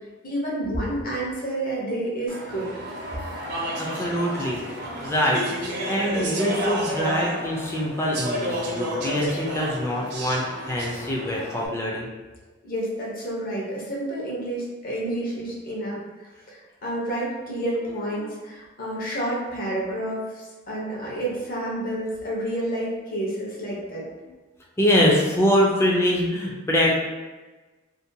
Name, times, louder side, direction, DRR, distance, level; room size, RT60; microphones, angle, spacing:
voice 1, 0.2-2.7 12.6-24.0, right 1 dB, 45° left, -5 dB, 0.8 m, -30 dB
Speech / Chatter, 2.3-11.7, right 1 dB, 55° right, 0.5 m, -31 dB
voice 2, 3.8-4.6 5.0-5.4 5.9-12.1 18.2-18.3 24.2-24.3 24.8-27.0, equal, 15° left, -3 dB, 0.4 m, -24 dB
2.6 x 2.1 x 2.7 m, 1.2 s
head